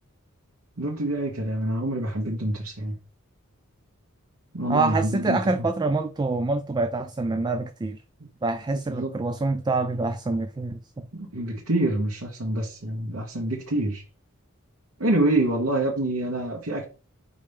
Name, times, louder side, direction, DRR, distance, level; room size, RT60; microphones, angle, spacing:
voice 1, 0.8-3.0 4.5-5.7 8.9-9.1 11.1-14.0 15.0-16.8, right 1 dB, 85° right, 1.2 m, -26 dB
voice 2, 4.7-8.0 8.4-11.1, right 3 dB, 20° right, 0.3 m, -26 dB
5.6 x 5.1 x 3.5 m
head